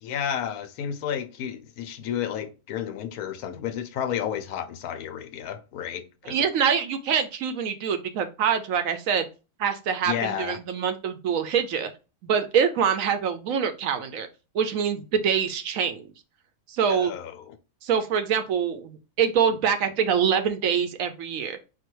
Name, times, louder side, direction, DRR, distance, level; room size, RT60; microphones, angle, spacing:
voice 1, 0.0-6.5 10.1-10.6 16.9-17.6, left 9 dB, 80° left, 1.1 m, -32 dB
voice 2, 6.2-9.3 9.6-11.9 12.2-14.3 14.5-16.1 16.7-17.1 17.8-21.6, right 7 dB, 70° right, 1.0 m, -25 dB
4.6 x 2.3 x 4.5 m
omnidirectional pair, 1.6 m